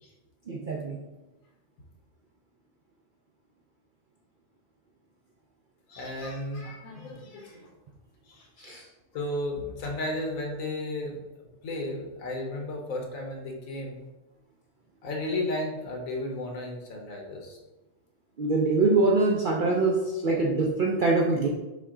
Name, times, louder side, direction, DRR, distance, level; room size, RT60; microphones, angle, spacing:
voice 1, 0.5-1.0 8.6-8.8 18.4-21.5, right 3 dB, 65° right, -2 dB, 0.5 m, -24 dB
voice 2, 5.9-7.7 8.3-8.7 9.1-11.2 11.6-14.0 15.0-17.6, left 1 dB, 80° left, 1 dB, 1.3 m, -34 dB
5.8 x 2.3 x 3.7 m, 1.1 s
omnidirectional pair, 1.4 m